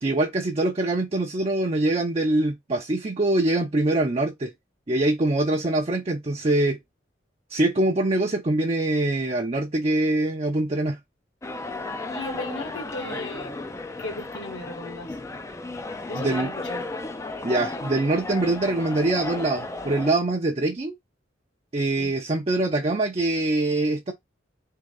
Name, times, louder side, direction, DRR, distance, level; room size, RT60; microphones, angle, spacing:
voice 1, 0.0-4.5 4.9-6.8 7.5-11.0 16.1-16.5 17.4-20.9 21.7-24.1, right 2 dB, 35° right, 0.5 m, -24 dB
sound 1, 11.4-20.1, left 2 dB, 15° left, 0.4 m, -34 dB
voice 2, 12.1-13.5 14.0-15.2 16.1-16.9 22.0-22.1, left 2 dB, 70° left, 1.6 m, -36 dB
3.7 x 2.8 x 3.7 m
head